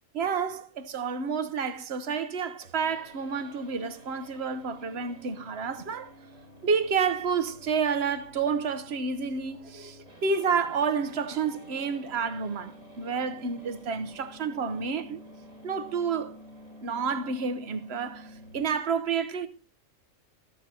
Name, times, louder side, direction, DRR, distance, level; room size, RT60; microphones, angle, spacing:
voice 1, 0.2-6.1 6.6-15.2 15.6-16.3 16.8-19.5, right 5 dB, 55° right, 1.1 m, -30 dB
sound 1, 2.6-18.6, equal, 90° right, 4.3 m, -50 dB
13.5 x 13.0 x 2.9 m
omnidirectional pair, 1.4 m